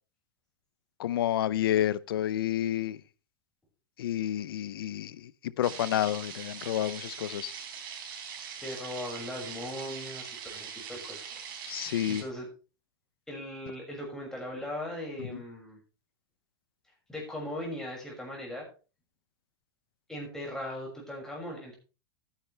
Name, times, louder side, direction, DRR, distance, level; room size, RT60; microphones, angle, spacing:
voice 1, 1.0-3.0 4.0-7.5 11.7-12.2 15.2-15.4, left 12 dB, 85° left, 0.7 m, -30 dB
sound 1, 5.6-12.2, right 7 dB, 70° right, 3.8 m, -42 dB
voice 2, 8.6-11.4 12.1-12.5 13.3-15.8 17.1-18.7 20.1-21.8, left 1 dB, 5° left, 6.3 m, -39 dB
14.0 x 10.0 x 3.4 m
supercardioid pair, 135°, 12 cm